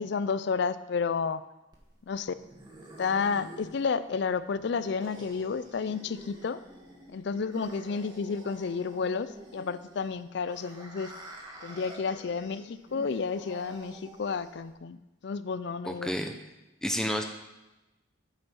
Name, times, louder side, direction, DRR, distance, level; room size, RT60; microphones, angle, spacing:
voice 1, 0.0-1.4 2.1-2.3 3.0-6.6 7.1-11.1 11.6-16.1, left 5 dB, 60° left, 15 dB, 0.4 m, -31 dB
sound 1, 1.7-14.7, right 1 dB, 20° right, 1.5 m, -48 dB
voice 2, 15.8-16.3 16.8-17.2, equal, 5° left, 5 dB, 0.7 m, -30 dB
9.2 x 5.2 x 6.3 m, 1.0 s
head